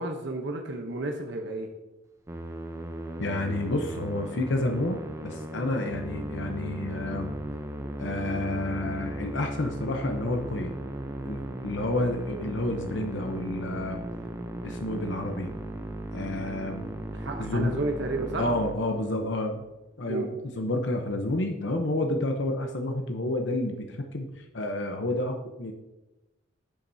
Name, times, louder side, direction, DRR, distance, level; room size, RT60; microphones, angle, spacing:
voice 1, 0.0-1.7 17.1-18.4 20.1-20.3, right 2 dB, 60° right, 3 dB, 0.9 m, -32 dB
Musical instrument, 2.3-19.4, right 1 dB, 15° right, 0.6 m, -37 dB
voice 2, 3.2-7.3 8.0-10.8 11.2-14.0 14.6-15.5 16.1-16.9 17.4-17.8 18.4-19.6 20.0-25.7, left 1 dB, 65° left, 4 dB, 0.8 m, -30 dB
10.0 x 7.4 x 2.7 m, 1.0 s
head